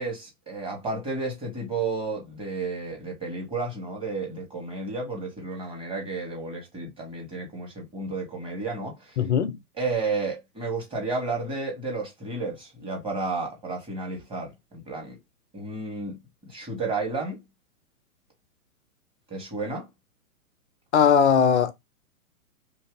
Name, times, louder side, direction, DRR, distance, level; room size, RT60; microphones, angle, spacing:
voice 1, 0.0-9.2 9.8-15.2 15.5-17.4 19.3-19.9, right 3 dB, 10° right, 1.3 m, -32 dB
voice 2, 9.2-9.6 20.9-21.7, left 7 dB, 50° left, 0.5 m, -19 dB
2.8 x 2.7 x 3.5 m
figure-of-eight pair, 115°, 45 cm